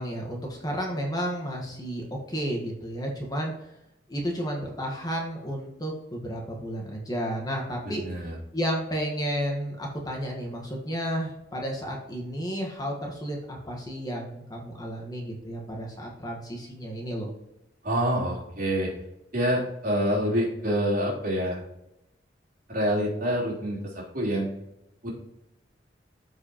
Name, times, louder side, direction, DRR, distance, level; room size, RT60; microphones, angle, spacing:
voice 1, 0.0-3.5 4.1-8.1 8.5-17.3, equal, 20° left, 0 dB, 1.4 m, -32 dB
voice 2, 7.8-8.4 17.8-18.9 19.3-21.6 22.7-24.5 25.0-25.1, equal, 55° right, -4 dB, 3.2 m, -27 dB
13.0 x 4.8 x 2.9 m, 0.86 s
head